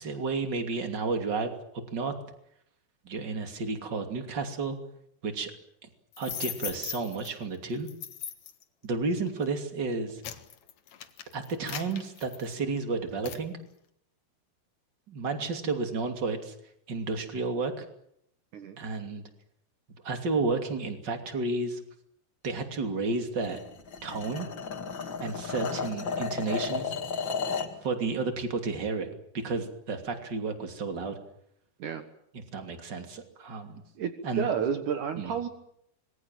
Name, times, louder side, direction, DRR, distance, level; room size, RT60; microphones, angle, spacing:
voice 1, 0.0-1.5 1.9-2.1 3.0-4.8 5.2-5.5 6.2-7.9 8.8-10.2 11.3-13.5 15.1-16.5 16.9-17.8 18.8-19.2 20.0-21.8 22.4-23.6 24.0-24.5 25.2-26.9 27.8-31.2 32.5-33.8 34.2-34.5 35.2-35.3, right 3 dB, 30° right, 6 dB, 2.3 m, -32 dB
door unlock, 6.1-7.3 7.9-8.6 9.3-9.5 9.9-12.8 13.2-13.5, left 10 dB, 80° left, 1.6 m, -39 dB
sound 1, 23.4-27.8, left 5 dB, 45° left, 1.6 m, -33 dB
voice 2, 34.0-35.5, right 7 dB, 80° right, 8 dB, 1.8 m, -31 dB
26.0 x 22.0 x 7.7 m, 0.73 s
omnidirectional pair, 5.8 m